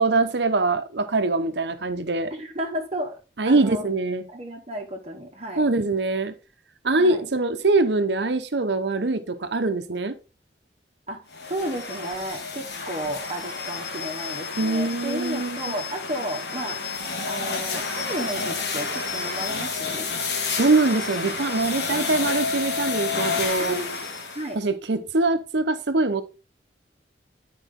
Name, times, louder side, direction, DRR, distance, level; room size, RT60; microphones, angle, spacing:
voice 1, 0.0-2.3 3.4-4.3 5.6-6.3 6.8-10.2 14.6-15.7 20.6-23.8 24.5-26.2, right 3 dB, 75° right, 0.9 m, -23 dB
voice 2, 2.3-3.2 3.4-3.9 4.3-5.7 7.0-7.2 11.1-11.2 11.5-16.8 17.3-20.1 23.6-24.0 24.3-24.6, right 1 dB, 35° right, 1.0 m, -33 dB
sound 1, 11.3-24.5, left 4 dB, 70° left, 1.5 m, -30 dB
10.0 x 4.8 x 3.7 m
head